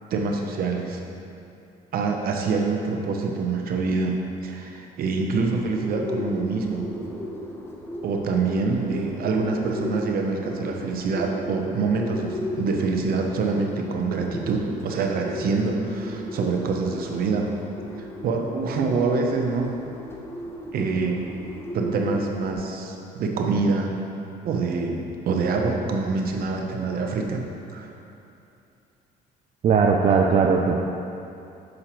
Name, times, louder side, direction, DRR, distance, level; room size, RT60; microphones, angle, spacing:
voice 1, 0.1-1.0 1.9-6.8 8.0-17.5 18.2-19.8 20.7-21.2 21.7-24.0 24.4-27.5 27.7-27.9, right 4 dB, 60° right, 2 dB, 0.9 m, -25 dB
Bird, 5.5-22.5, left 1 dB, 15° left, 0.8 m, -36 dB
voice 2, 29.6-30.8, right 5 dB, 40° right, 1 dB, 0.4 m, -18 dB
6.5 x 5.0 x 4.4 m, 2.7 s
cardioid pair, 110°, 17 cm